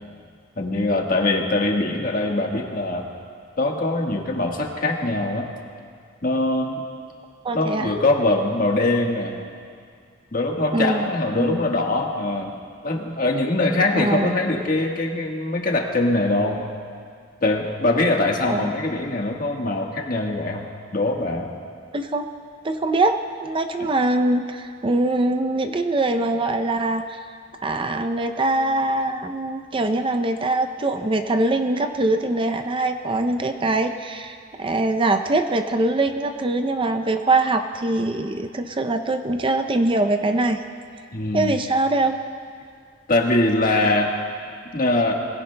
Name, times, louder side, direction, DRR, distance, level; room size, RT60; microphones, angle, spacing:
voice 1, 0.6-3.1 3.6-5.5 6.2-6.8 7.5-9.3 10.3-12.5 12.8-16.6 17.4-20.6 20.9-21.5 41.1-41.6 43.1-44.1 44.7-45.1, left 2 dB, 50° left, 0 dB, 1.4 m, -22 dB
voice 2, 7.4-7.9 10.7-11.1 11.4-11.6 13.9-14.3 18.5-18.7 21.9-22.3 22.6-27.2 27.6-40.6 41.3-42.2, right 2 dB, 30° right, 6 dB, 0.5 m, -23 dB
21.5 x 16.5 x 2.2 m, 2.2 s
head